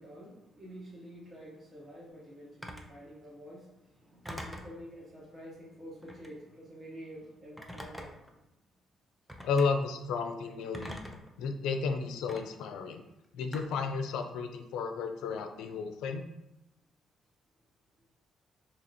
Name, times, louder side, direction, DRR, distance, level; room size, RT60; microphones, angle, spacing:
voice 1, 0.0-8.4, equal, 30° right, -5 dB, 1.3 m, -48 dB
Telephone, 2.6-2.9 4.2-4.8 6.0-6.4 7.6-8.3 9.3-9.7 10.7-11.3 12.3-12.4 13.5-13.9, equal, ahead, 0.5 m, -43 dB
voice 2, 9.4-11.0 11.4-13.0 13.3-16.3, left 5 dB, 90° left, 6 dB, 0.4 m, -33 dB
2.8 x 2.8 x 4.1 m, 0.89 s
cardioid pair, 90°, 0 cm